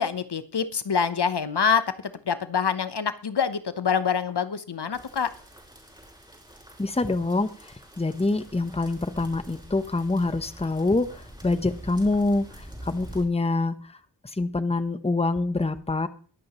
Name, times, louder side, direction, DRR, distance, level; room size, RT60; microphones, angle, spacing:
voice 1, 0.0-5.3, left 6 dB, 65° left, 13 dB, 0.8 m, -26 dB
sound 1, 4.9-13.2, equal, 10° right, 5.6 m, -46 dB
voice 2, 6.8-7.5 8.0-12.5 12.8-13.7 14.4-16.1, left 2 dB, 15° left, 12 dB, 0.8 m, -25 dB
22.0 x 8.5 x 3.0 m, 0.43 s
wide cardioid pair, 45°, 43 cm